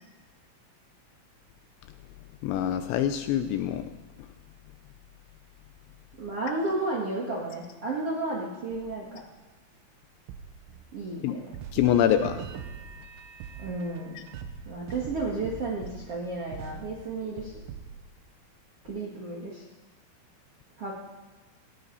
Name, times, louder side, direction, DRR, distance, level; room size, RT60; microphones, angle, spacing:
voice 1, 2.4-3.9 11.2-11.4 11.7-12.5, left 10 dB, 80° left, 8 dB, 2.9 m, -25 dB
voice 2, 6.2-9.2 10.9-11.5 13.6-14.2 14.6-17.5 18.8-19.6 20.8-20.9, right 2 dB, 55° right, -2 dB, 1.6 m, -32 dB
sound 1, 8.7-9.4 10.3-11.2 11.5-18.1, right 7 dB, 80° right, 3.6 m, -43 dB
18.5 x 18.5 x 4.1 m, 1.2 s
omnidirectional pair, 5.7 m